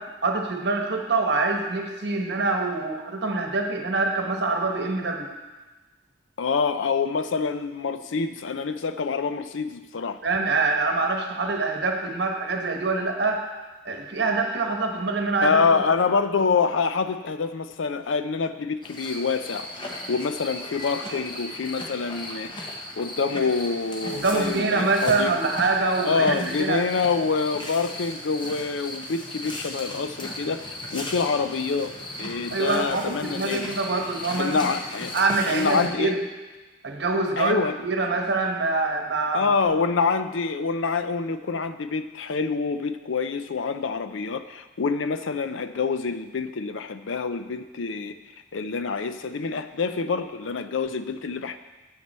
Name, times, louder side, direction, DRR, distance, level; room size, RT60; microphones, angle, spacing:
voice 1, 0.0-5.3 10.2-13.4 13.8-15.9 24.1-26.8 32.5-34.7 35.1-36.2 36.8-39.5, right 3 dB, 55° right, 3 dB, 1.1 m, -25 dB
voice 2, 6.4-10.2 15.4-19.7 20.1-25.3 26.0-31.9 32.2-33.7 34.4-35.1 35.4-36.1 37.4-37.8 39.3-48.1 48.5-51.6, left 4 dB, 75° left, 11 dB, 0.5 m, -26 dB
sound 1, 18.8-35.9, left 1 dB, 25° left, 1.0 m, -36 dB
9.3 x 8.2 x 4.3 m, 1.2 s
head